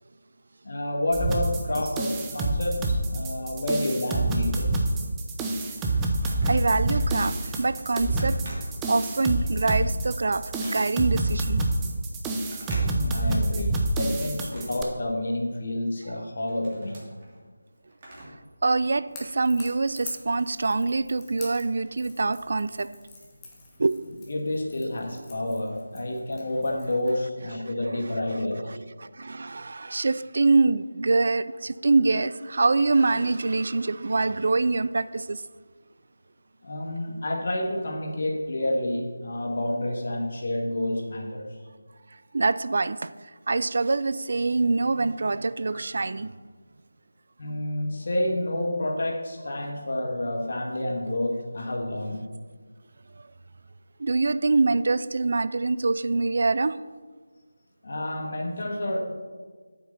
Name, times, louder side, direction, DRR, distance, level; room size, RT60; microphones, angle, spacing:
voice 1, 0.6-4.9 12.9-17.0 24.3-28.8 36.6-41.5 45.7-45.8 47.4-52.2 57.8-59.0, left 1 dB, 50° left, 0 dB, 1.7 m, -29 dB
sound 1, 1.1-14.8, right 2 dB, 10° right, 0.7 m, -27 dB
Telephone, 5.8-6.8 7.3-7.5 7.7-9.2 9.7-11.2 12.4-13.5 13.8-15.6 16.0-18.5 18.8-18.9 19.8-19.9, right 1 dB, 30° right, 2.7 m, -46 dB
voice 2, 6.4-8.4 8.9-11.6 18.6-22.9 23.8-24.0 28.7-35.4 42.3-43.1 43.5-46.3 54.0-56.8, right 3 dB, 50° right, 15 dB, 0.3 m, -25 dB
Crackle / Crack, 19.1-27.2, left 3 dB, 10° left, 1.3 m, -47 dB
8.6 x 5.9 x 6.7 m, 1.4 s
figure-of-eight pair, 160°, 0 cm